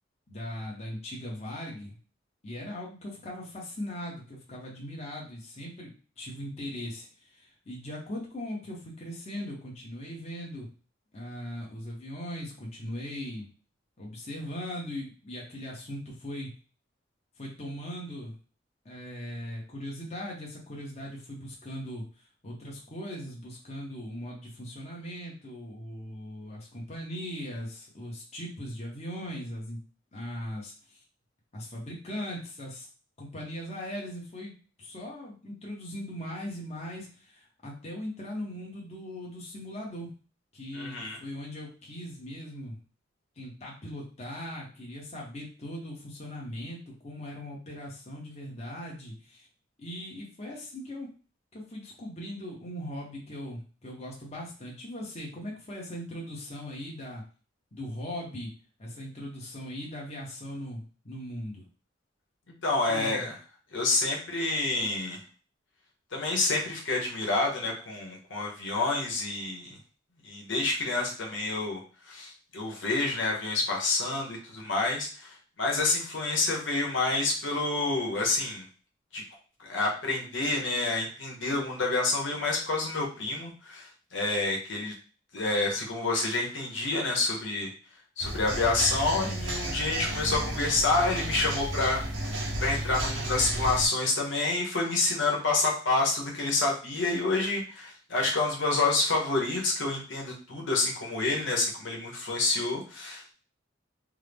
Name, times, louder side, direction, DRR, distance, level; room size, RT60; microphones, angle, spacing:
voice 1, 0.3-2.0 2.4-10.7 11.1-13.5 14.0-16.5 17.4-18.3 18.8-22.0 22.4-29.8 30.1-31.0 31.5-32.9 33.2-40.1 40.5-42.8 43.4-49.5 49.8-51.1 51.5-57.2 57.7-58.5 58.8-61.7 62.9-63.3, equal, 35° left, -3 dB, 0.9 m, -39 dB
voice 2, 40.7-41.2 62.6-63.3 63.7-65.2 66.1-69.8 70.2-71.8 72.1-78.6 79.1-79.2 79.6-84.9 85.3-87.7 88.2-92.0 92.6-103.3, left 3 dB, 85° left, -1 dB, 1.0 m, -28 dB
sound 1, 88.2-93.9, right 1 dB, 85° right, 0.8 m, -33 dB
3.6 x 2.1 x 3.4 m, 0.37 s
head